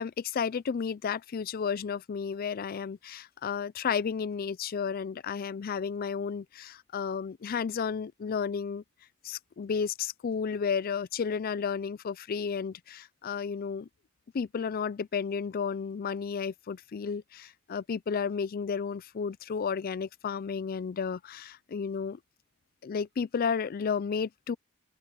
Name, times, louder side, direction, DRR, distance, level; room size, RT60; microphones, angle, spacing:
voice 1, 0.0-8.8 9.2-13.9 14.3-22.2 22.8-24.6, left 6 dB, 45° left, 0.4 m, -32 dB
head